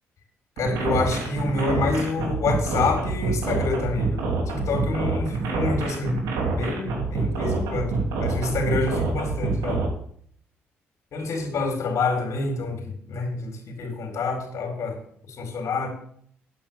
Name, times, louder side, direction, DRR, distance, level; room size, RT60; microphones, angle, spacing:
voice 1, 0.6-6.2 6.5-7.9 8.2-9.9 11.1-15.0 15.3-15.9, left 3 dB, 60° left, 3 dB, 3.9 m, -27 dB
sound 1, 0.6-9.9, right 4 dB, 75° right, 2.9 m, -26 dB
9.0 x 8.7 x 7.1 m, 0.62 s
hypercardioid pair, 55°, 6 cm